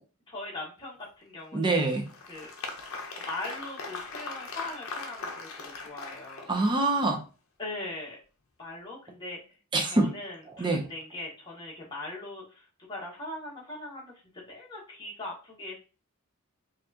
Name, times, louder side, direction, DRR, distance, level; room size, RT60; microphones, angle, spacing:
voice 1, 0.3-1.9 2.3-2.5 3.3-6.5 7.6-8.2 8.6-9.4 9.8-12.6 12.9-14.1 14.5-15.8, left 2 dB, 20° left, -4 dB, 1.2 m, -40 dB
voice 2, 1.5-2.0 6.5-7.2 9.7-10.1 10.6-10.8, right 2 dB, 20° right, 2 dB, 0.5 m, -25 dB
Applause, 1.6-6.9, left 3 dB, 65° left, 0.6 m, -40 dB
4.5 x 2.4 x 2.7 m, 0.34 s
head